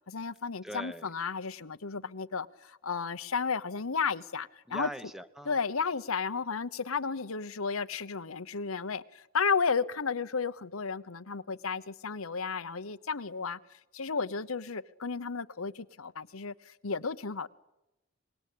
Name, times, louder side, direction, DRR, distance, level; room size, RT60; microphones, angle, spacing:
voice 1, 0.1-4.9 5.4-17.5, left 5 dB, 90° left, 1.0 m, -33 dB
voice 2, 0.6-1.1 4.7-5.5, right 1 dB, ahead, 1.0 m, -41 dB
25.5 x 21.5 x 8.6 m
head